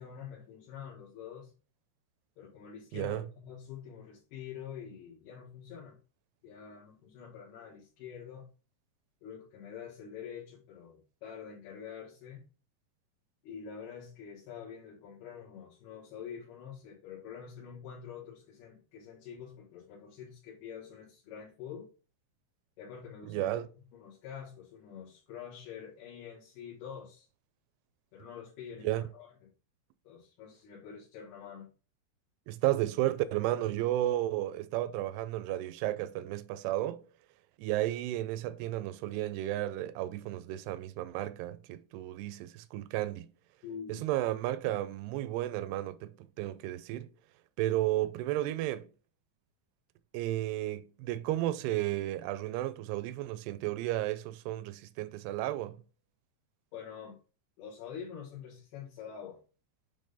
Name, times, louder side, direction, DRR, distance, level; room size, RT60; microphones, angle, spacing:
voice 1, 0.0-1.5 2.4-6.0 6.4-8.5 9.2-12.5 13.4-21.9 22.8-23.6 23.9-27.3 28.1-29.5 30.1-31.7 43.6-44.0 56.7-57.2 57.6-59.4, left 7 dB, 75° left, 3.6 m, -46 dB
voice 2, 2.9-3.2 23.3-23.7 28.8-29.0 32.5-37.1 37.6-43.3 43.9-47.1 47.6-48.9 50.1-55.8, right 14 dB, 85° right, 2.5 m, -33 dB
8.3 x 3.6 x 3.9 m
omnidirectional pair, 4.7 m